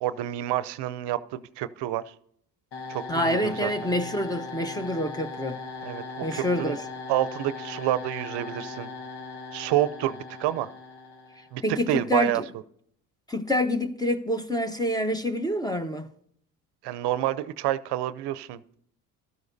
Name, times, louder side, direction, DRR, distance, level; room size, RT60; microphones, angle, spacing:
voice 1, 0.0-2.1 2.9-3.9 5.8-6.8 7.1-8.9 9.5-10.7 11.5-12.4 16.8-18.8, right 13 dB, 65° right, 0.7 m, -28 dB
sound 1, 2.7-11.6, left 4 dB, 60° left, 1.6 m, -39 dB
voice 2, 3.1-5.6 6.2-6.8 11.6-12.3 13.3-16.1, left 1 dB, 10° left, 1.1 m, -27 dB
15.0 x 12.5 x 2.7 m
supercardioid pair, 75°, 44 cm